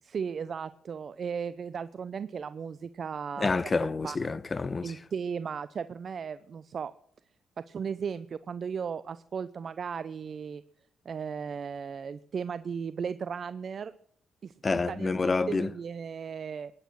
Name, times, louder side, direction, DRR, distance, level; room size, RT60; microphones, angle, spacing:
voice 1, 0.0-3.5 4.0-4.2 4.8-6.9 7.6-10.6 11.0-13.9 14.4-16.7, right 6 dB, 55° right, 0.6 m, -36 dB
voice 2, 3.4-4.9 14.6-15.7, left 4 dB, 35° left, 1.0 m, -28 dB
21.0 x 10.5 x 6.3 m
supercardioid pair, 60°, 0 cm